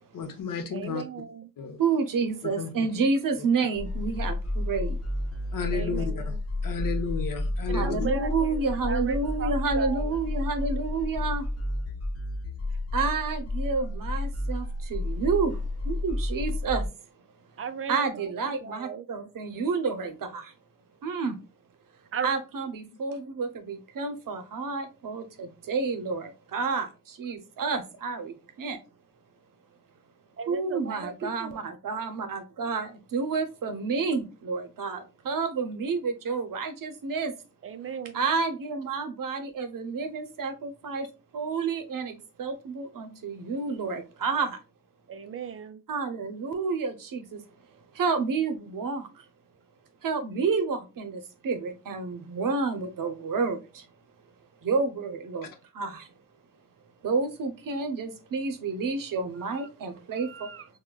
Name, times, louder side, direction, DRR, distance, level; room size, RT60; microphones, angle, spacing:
voice 1, 0.1-1.0 1.6-1.8 2.6-2.7 5.5-6.1 6.6-8.0, left 5 dB, 90° left, 0.8 m, -32 dB
voice 2, 0.7-1.5 5.7-6.4 7.7-8.6 8.9-10.2 17.6-19.1 22.1-22.4 30.4-31.6 37.6-38.3 45.1-45.8 59.4-59.7 60.1-60.7, right 6 dB, 45° right, 0.4 m, -37 dB
voice 3, 1.8-5.0 7.7-11.5 12.9-16.9 17.9-20.5 21.0-21.4 22.2-28.8 30.5-37.3 38.1-41.1 41.3-44.6 45.9-47.4 47.9-49.2 50.0-53.9 54.6-56.1 57.0-60.5, right 4 dB, 85° right, 0.7 m, -30 dB
sound 1, 3.8-16.9, left 2 dB, 50° left, 0.6 m, -31 dB
4.8 x 2.2 x 2.2 m
wide cardioid pair, 170°, 32 cm